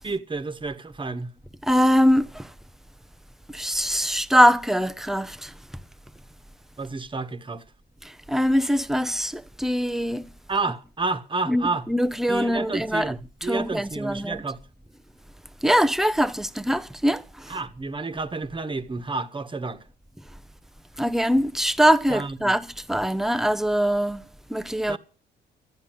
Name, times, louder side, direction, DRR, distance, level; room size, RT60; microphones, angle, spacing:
voice 1, 0.0-1.3 6.8-7.6 10.5-11.9 12.3-14.6 17.5-19.8 22.1-22.5 24.9-25.0, right 3 dB, 25° right, 1.5 m, -30 dB
voice 2, 1.7-2.5 3.5-5.5 8.0-10.3 11.5-13.1 13.5-14.4 15.6-17.5 21.0-24.2 24.5-25.0, equal, ahead, 0.8 m, -22 dB
13.5 x 10.5 x 7.7 m
cardioid pair, 90°, 20 cm